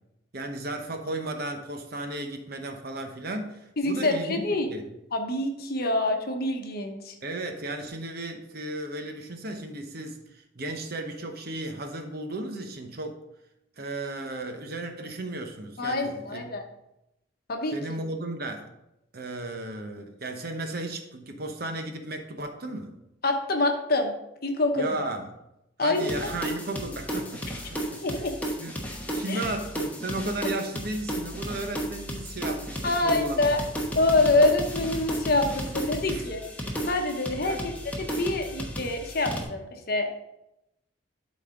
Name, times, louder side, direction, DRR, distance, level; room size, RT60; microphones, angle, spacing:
voice 1, 0.3-4.9 7.2-13.2 13.8-16.5 17.7-18.7 19.1-23.0 24.8-25.3 25.8-28.2 28.6-28.7 29.1-33.4 34.2-34.5 35.4-35.5 36.1-36.3 37.4-37.6, right 2 dB, 55° right, 5 dB, 1.0 m, -35 dB
voice 2, 3.8-4.7 5.1-7.2 15.8-16.6 17.5-18.0 23.2-24.1 24.4-25.1 25.8-26.1 28.0-28.3 29.3-29.5 32.8-33.6 33.9-37.6 38.0-40.2, left 2 dB, 55° left, 4 dB, 1.0 m, -26 dB
sound 1, 26.0-39.4, equal, 10° left, 1.1 m, -34 dB
12.0 x 4.2 x 3.7 m, 0.87 s
head